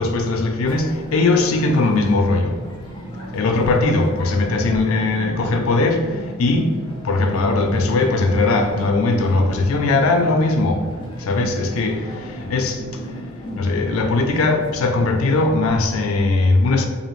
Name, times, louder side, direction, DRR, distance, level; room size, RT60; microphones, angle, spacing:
voice 1, 0.0-2.5 3.3-6.0 6.4-6.7 7.0-10.8 11.3-12.0 12.5-12.8 13.6-16.9, left 3 dB, 85° left, 0.4 m, -19 dB
sound 1, 0.7-15.5, equal, 20° left, 0.5 m, -34 dB
2.5 x 2.4 x 3.1 m
head